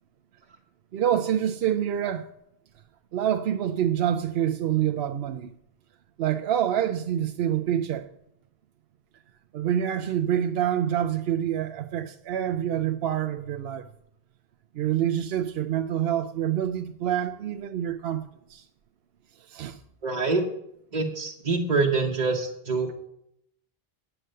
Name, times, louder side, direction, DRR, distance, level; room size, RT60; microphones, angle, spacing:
voice 1, 0.9-2.3 3.1-5.5 6.2-8.1 9.5-13.9 14.7-18.7 19.4-19.8, right 10 dB, 75° right, 0.8 m, -27 dB
voice 2, 20.0-20.4 20.9-23.0, right 3 dB, 45° right, 1.1 m, -25 dB
8.9 x 7.9 x 6.6 m
omnidirectional pair, 1.0 m